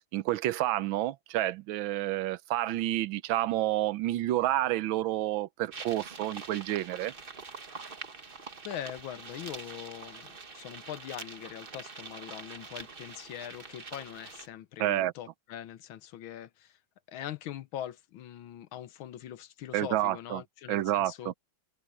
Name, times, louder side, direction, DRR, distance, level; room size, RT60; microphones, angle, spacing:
voice 1, 0.1-7.1 14.8-15.1 19.7-20.4 20.7-21.3, right 14 dB, 75° right, 1.3 m, -29 dB
sound 1, 5.7-14.5, right 4 dB, 30° right, 1.3 m, -45 dB
voice 2, 8.6-16.8 17.1-21.3, left 11 dB, 70° left, 1.5 m, -42 dB
omnidirectional pair, 2.3 m